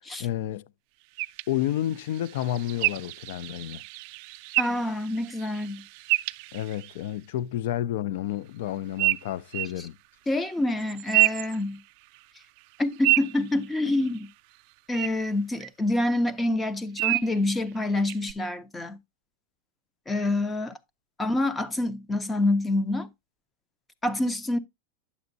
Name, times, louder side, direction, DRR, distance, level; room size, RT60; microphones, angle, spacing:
voice 1, 0.2-0.7 1.5-3.8 6.5-10.0, left 12 dB, 65° left, 0.4 m, -30 dB
sound 1, 1.2-7.1 9.0-9.8 10.8-12.2 12.6-14.3 14.9-15.1 15.6-15.7 17.0-17.4 18.1-18.3, right 26 dB, 50° right, 0.3 m, -29 dB
voice 2, 4.6-5.8 9.8-9.9 10.3-11.8 12.8-14.3 14.9-19.0 20.1-20.7 21.2-23.1 24.0-24.6, left 2 dB, 10° left, 0.6 m, -27 dB
9.6 x 7.0 x 2.6 m
supercardioid pair, 150°, 0 cm